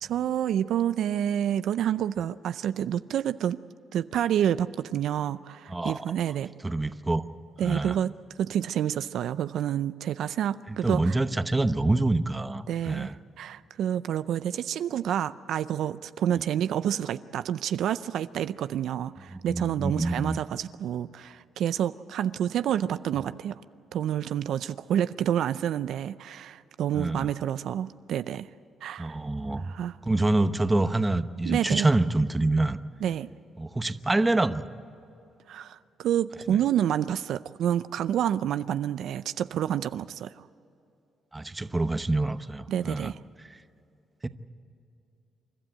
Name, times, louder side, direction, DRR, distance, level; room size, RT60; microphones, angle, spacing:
voice 1, 0.0-3.6 3.9-6.5 7.6-8.1 8.4-11.2 12.7-23.6 23.9-28.5 28.8-29.2 29.6-30.0 31.4-31.9 33.0-33.3 35.5-40.4 42.7-43.2, right 10 dB, 75° right, 13 dB, 0.5 m, -28 dB
voice 2, 5.7-6.0 6.6-7.2 7.6-8.0 10.7-13.2 19.3-20.4 26.9-27.3 29.0-29.7 30.1-32.8 33.6-34.6 41.3-43.1 43.5-43.6 44.2-44.3, right 2 dB, 15° right, 11 dB, 0.9 m, -26 dB
29.0 x 12.5 x 9.0 m, 2.7 s
cardioid pair, 90°, 0 cm